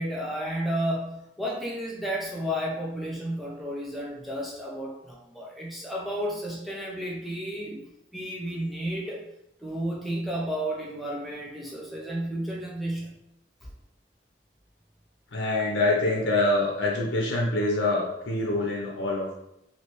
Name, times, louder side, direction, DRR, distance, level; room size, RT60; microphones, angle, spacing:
voice 1, 0.0-9.2 9.6-13.2, equal, ahead, -4 dB, 0.7 m, -32 dB
voice 2, 15.3-19.4, left 2 dB, 90° left, -2 dB, 0.8 m, -25 dB
3.3 x 2.8 x 3.0 m, 0.82 s
head